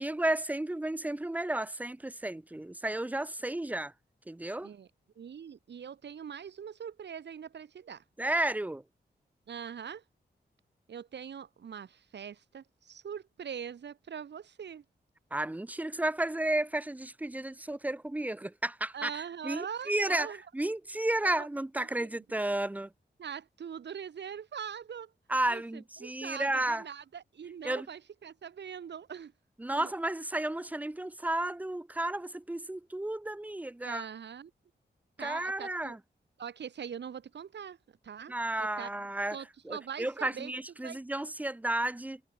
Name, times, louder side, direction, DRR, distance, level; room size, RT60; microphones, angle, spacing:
voice 1, 0.0-3.9 4.3-4.7 8.2-8.8 15.3-20.3 20.5-22.9 25.3-26.8 27.6-27.9 29.6-34.1 35.2-36.0 38.3-39.4 39.6-42.2, right 1 dB, 10° right, 0.5 m, -32 dB
voice 2, 5.2-8.0 9.5-10.0 10.9-14.8 18.9-20.4 21.2-21.5 22.0-22.2 23.2-25.1 25.5-29.3 29.7-29.9 33.8-34.5 35.2-36.0 36.4-37.8 38.0-38.3 38.6-38.9 39.3-40.5 40.8-41.0, right 7 dB, 85° right, 1.8 m, -42 dB
wide cardioid pair, 165°, 18 cm